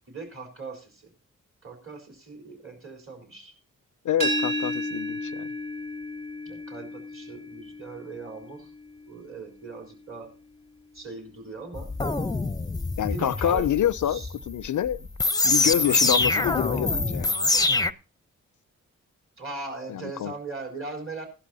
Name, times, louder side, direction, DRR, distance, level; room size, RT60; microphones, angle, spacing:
voice 1, 0.1-1.1 1.6-3.5 6.5-8.7 9.1-10.3 10.9-11.9 13.1-13.8 14.0-14.3 19.4-21.3, right 3 dB, 40° right, 3.9 m, -39 dB
voice 2, 4.0-5.5 13.0-15.0 15.4-17.3 19.9-20.3, left 11 dB, 65° left, 0.5 m, -27 dB
sound 1, 4.2-10.0, equal, 65° right, 4.7 m, -33 dB
sound 2, 11.7-17.9, left 2 dB, 10° left, 0.7 m, -25 dB
16.5 x 11.5 x 2.7 m
supercardioid pair, 40°, 33 cm